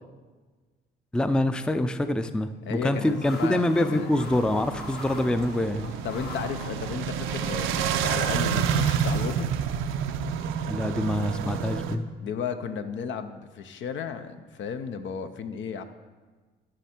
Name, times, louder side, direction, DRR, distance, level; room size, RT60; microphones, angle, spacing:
voice 1, 1.1-5.9 10.7-12.1, left 1 dB, 5° left, 11 dB, 0.4 m, -25 dB
voice 2, 2.7-4.2 6.0-9.5 12.2-15.8, left 7 dB, 70° left, 9 dB, 0.7 m, -34 dB
sound 1, 2.9-8.2, left 3 dB, 55° left, 1.5 m, -43 dB
sound 2, 4.2-12.0, right 7 dB, 90° right, 0.5 m, -29 dB
11.5 x 6.4 x 4.4 m, 1.4 s
cardioid pair, 90°, 20 cm